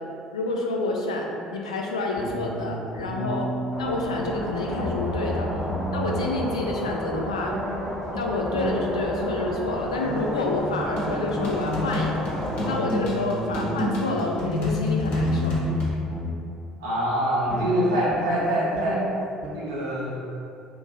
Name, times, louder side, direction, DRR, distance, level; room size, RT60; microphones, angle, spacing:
voice 1, 0.3-1.3 1.5-3.5 3.8-5.5 5.9-7.6 8.1-12.3 12.6-15.5, left 2 dB, 75° left, 0 dB, 0.4 m, -28 dB
sound 1, 1.3-1.6 2.2-4.3 4.6-6.9 7.5-9.5 10.0-11.9 12.5-14.5 15.0-16.3 16.9-17.0 17.5-19.5, equal, 35° right, 0.9 m, -33 dB
sound 2, 3.7-12.8, equal, 20° left, 0.8 m, -33 dB
sound 3, 11.0-15.9, left 1 dB, 55° left, 0.9 m, -28 dB
voice 2, 16.8-19.1 19.5-20.2, equal, 70° right, -6 dB, 0.8 m, -24 dB
2.9 x 2.6 x 3.7 m, 2.5 s
figure-of-eight pair, 55°, 3 cm